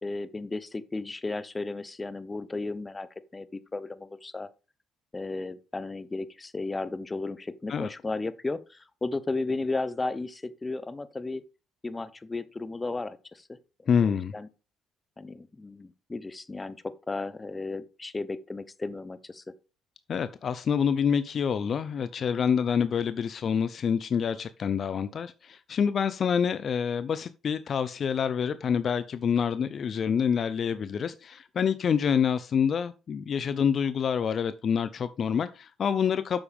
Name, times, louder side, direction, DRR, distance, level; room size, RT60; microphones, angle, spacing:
voice 1, 0.0-3.1 3.3-4.5 5.1-11.4 11.8-13.5 14.0-14.5 15.2-19.4, left 3 dB, 20° left, 0.8 m, -34 dB
voice 2, 13.9-14.3 20.1-36.4, left 7 dB, 50° left, 0.5 m, -27 dB
8.7 x 7.0 x 3.5 m
supercardioid pair, 80°, 0 cm